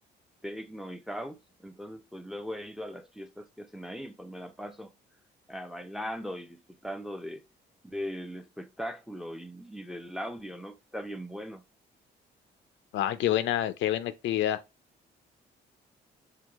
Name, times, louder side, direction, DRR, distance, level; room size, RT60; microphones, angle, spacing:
voice 1, 0.4-4.9 5.5-7.4 7.8-11.6, equal, ahead, 0.5 m, -39 dB
voice 2, 12.9-14.6, left 12 dB, 80° left, 0.5 m, -27 dB
4.6 x 2.2 x 3.5 m
cardioid pair, 85°, 19 cm